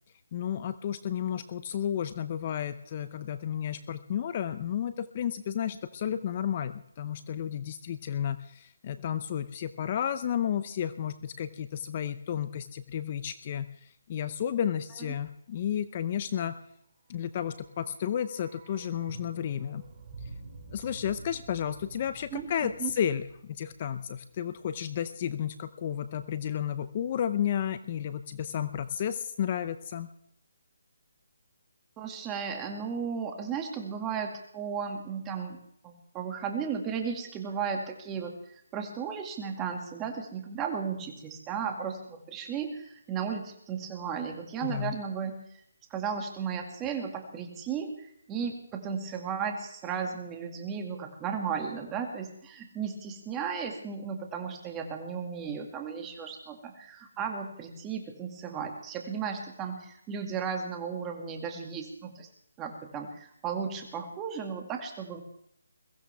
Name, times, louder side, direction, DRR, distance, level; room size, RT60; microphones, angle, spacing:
voice 1, 0.3-16.5 17.1-19.8 20.2-20.3 20.7-30.1 44.6-44.9, left 9 dB, 35° left, 12 dB, 0.6 m, -32 dB
sound 1, 17.5-25.5 25.8-25.9, right 3 dB, 35° right, 2.7 m, -49 dB
voice 2, 32.0-35.6 35.8-45.4 45.9-62.3 62.6-65.2, right 6 dB, 15° right, 3 dB, 2.1 m, -35 dB
22.0 x 15.5 x 3.5 m, 0.72 s
hypercardioid pair, 160°, 0 cm